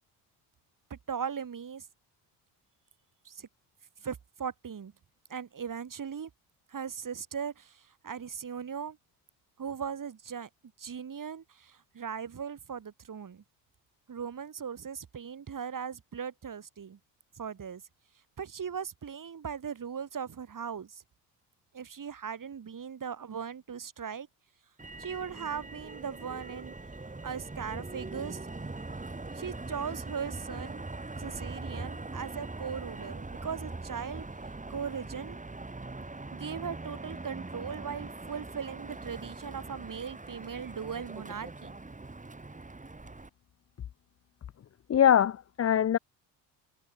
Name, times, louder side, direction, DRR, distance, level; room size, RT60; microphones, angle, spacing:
voice 1, 0.9-1.9 3.2-3.5 4.0-4.9 5.3-6.3 6.7-9.0 9.6-10.5 10.8-13.4 14.1-17.0 17.3-17.8 18.4-21.0 21.7-24.3 25.0-26.7 27.2-28.4 29.3-30.8 31.2-34.2 34.7-35.4 36.3-41.7, right 7 dB, 40° right, 4.8 m, -38 dB
Motor vehicle (road), 24.8-43.3, right 3 dB, 15° right, 3.4 m, -42 dB
voice 2, 44.9-46.0, left 9 dB, 30° left, 0.7 m, -23 dB
hypercardioid pair, 60°, 49 cm